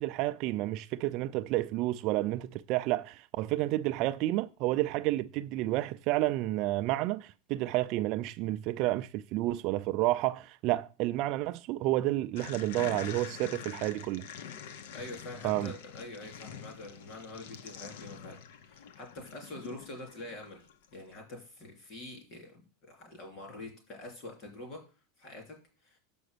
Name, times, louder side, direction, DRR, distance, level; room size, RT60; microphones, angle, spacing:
voice 1, 0.0-14.2 15.4-15.7, right 16 dB, 35° right, 0.3 m, -30 dB
sound 1, 12.4-20.9, left 8 dB, 65° left, 0.7 m, -46 dB
voice 2, 14.9-24.8 25.2-26.0, left 2 dB, 35° left, 3.1 m, -46 dB
6.9 x 5.0 x 6.6 m
supercardioid pair, 180°, 0 cm